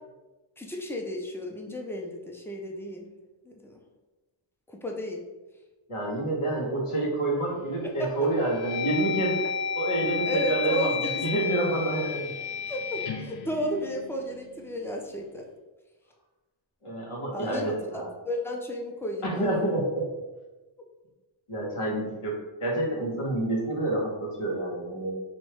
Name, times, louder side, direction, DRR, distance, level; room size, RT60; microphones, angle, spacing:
voice 1, 0.6-3.1 3.4-3.8 4.7-5.2 7.8-8.3 10.2-11.2 12.7-15.4 17.3-17.6 17.9-19.5, equal, 5° left, 1 dB, 0.5 m, -33 dB
voice 2, 5.9-9.4 9.7-12.3 16.8-18.1 19.2-20.1 21.5-25.1, right 2 dB, 85° left, -3 dB, 1.3 m, -28 dB
sound 1, 7.3-7.8 8.3-14.5, left 6 dB, 55° left, 0.5 m, -32 dB
3.0 x 2.7 x 4.5 m, 1.2 s
wide cardioid pair, 100°, 50 cm